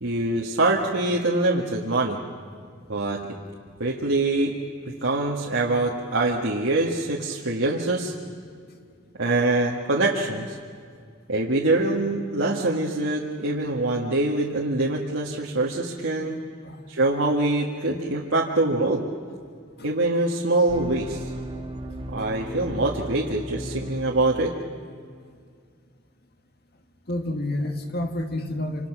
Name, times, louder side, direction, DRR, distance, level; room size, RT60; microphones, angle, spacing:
voice 1, 0.0-2.2 2.9-3.2 3.8-4.6 5.0-8.1 9.2-10.5 11.3-16.4 16.9-19.0 19.8-21.3 22.1-24.5, right 2 dB, 85° right, -3 dB, 1.8 m, -24 dB
sound 1, 20.7-24.6, right 1 dB, 25° right, 1.9 m, -36 dB
voice 2, 27.1-28.9, left 1 dB, 55° left, 6 dB, 1.9 m, -29 dB
27.0 x 26.0 x 6.2 m, 2.1 s
head